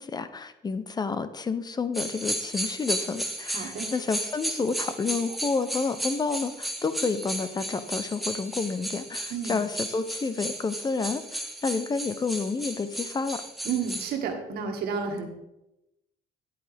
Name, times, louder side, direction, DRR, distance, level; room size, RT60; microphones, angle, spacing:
voice 1, 0.0-13.4, left 4 dB, 25° left, 12 dB, 0.7 m, -30 dB
sound 1, 1.9-14.1, right 1 dB, ahead, 1.5 m, -34 dB
voice 2, 3.5-3.9 9.3-9.6 13.7-15.3, right 6 dB, 70° right, 4 dB, 1.8 m, -31 dB
10.5 x 8.8 x 3.5 m, 0.91 s
cardioid pair, 110°, 17 cm